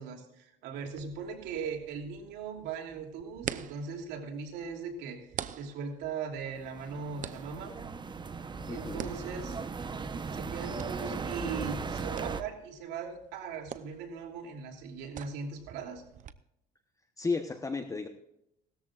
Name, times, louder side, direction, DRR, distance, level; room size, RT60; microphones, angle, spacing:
voice 1, 0.0-7.8 8.7-9.6 10.3-16.0, right 5 dB, 90° right, 2 dB, 3.0 m, -39 dB
sound 1, 0.8-16.3, right 9 dB, 50° right, 0.8 m, -47 dB
sound 2, 6.4-12.4, right 5 dB, 25° right, 0.9 m, -38 dB
voice 2, 8.7-9.1 17.2-18.1, left 4 dB, 20° left, 6 dB, 1.0 m, -33 dB
18.5 x 14.0 x 2.5 m, 0.80 s
cardioid pair, 110°, 17 cm